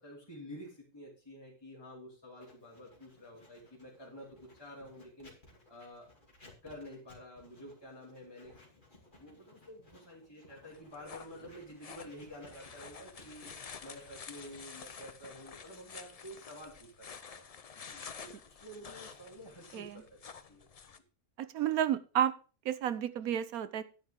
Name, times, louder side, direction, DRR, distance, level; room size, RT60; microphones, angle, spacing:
voice 1, 0.0-5.3 5.7-6.1 6.6-8.5 9.2-13.5 13.8-17.4 17.7-20.7, equal, 15° left, -5 dB, 2.9 m, -50 dB
Writing, 2.4-17.1, left 2 dB, 35° left, 2.6 m, -60 dB
sound 1, 10.7-21.0, left 6 dB, 55° left, 0.4 m, -50 dB
voice 2, 21.4-22.3 22.6-23.8, right 10 dB, 80° right, 14 dB, 1.2 m, -31 dB
10.0 x 9.7 x 3.6 m, 0.36 s
omnidirectional pair, 1.5 m